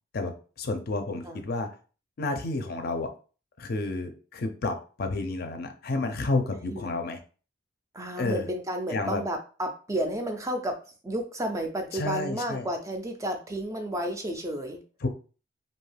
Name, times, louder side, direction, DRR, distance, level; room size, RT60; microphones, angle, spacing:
voice 1, 0.1-1.7 2.2-3.1 3.6-7.2 8.2-8.5 8.9-9.2 11.9-12.7 15.0-15.1, left 2 dB, 50° left, 7 dB, 0.5 m, -30 dB
voice 2, 6.7-7.0 7.9-14.8, right 1 dB, 15° right, 4 dB, 0.3 m, -32 dB
2.6 x 2.3 x 3.2 m, 0.37 s
head